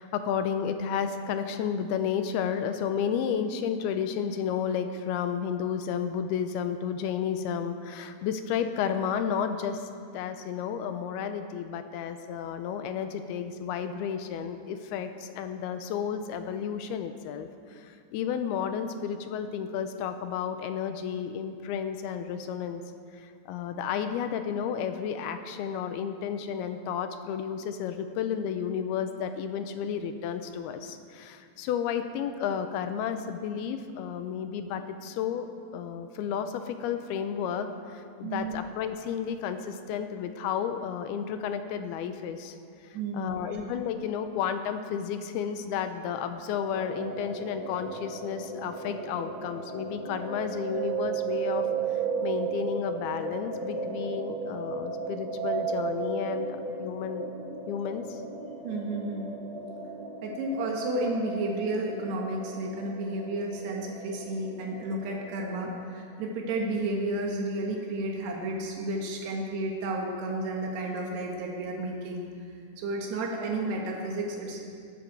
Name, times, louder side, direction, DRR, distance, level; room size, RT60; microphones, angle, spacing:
voice 1, 0.0-9.8 10.1-17.5 17.8-22.8 23.5-35.5 35.7-42.6 43.1-51.7 52.2-56.5 56.8-57.3 57.7-58.1, left 7 dB, 80° left, 8 dB, 2.6 m, -32 dB
voice 2, 38.2-38.6 42.9-43.6 58.6-59.3 60.2-72.3 72.8-74.6, right 2 dB, 85° right, 0 dB, 3.5 m, -32 dB
sound 1, 46.7-65.8, right 5 dB, 45° right, 4.9 m, -35 dB
19.5 x 12.5 x 4.7 m, 2.3 s
omnidirectional pair, 4.7 m